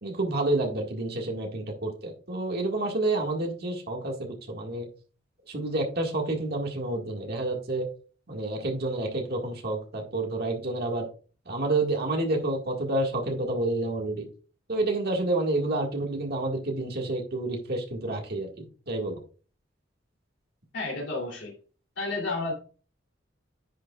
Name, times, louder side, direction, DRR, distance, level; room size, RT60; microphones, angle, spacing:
voice 1, 0.0-4.9 5.5-7.9 8.3-11.1 11.5-14.3 14.7-19.2, right 2 dB, 55° right, 1 dB, 1.8 m, -29 dB
voice 2, 20.7-21.5 22.0-22.5, left 3 dB, 65° left, -1 dB, 2.9 m, -31 dB
10.0 x 6.3 x 2.3 m, 0.37 s
head